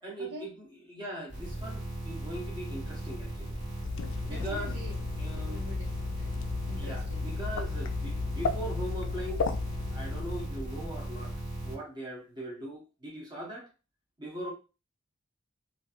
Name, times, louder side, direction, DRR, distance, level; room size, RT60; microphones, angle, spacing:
voice 1, 0.0-3.6 4.3-4.8 5.2-5.6 6.8-9.5 9.9-11.3 11.6-13.7 14.2-14.5, right 1 dB, 20° right, -2 dB, 0.7 m, -40 dB
sound 1, 1.3-11.7, right 1 dB, 35° right, 1.5 m, -37 dB
sound 2, 3.8-10.5, left 5 dB, 65° left, 0.3 m, -34 dB
voice 2, 4.2-5.1 5.3-7.3, left 1 dB, 75° right, -9 dB, 1.1 m, -46 dB
2.9 x 2.5 x 2.4 m, 0.32 s
head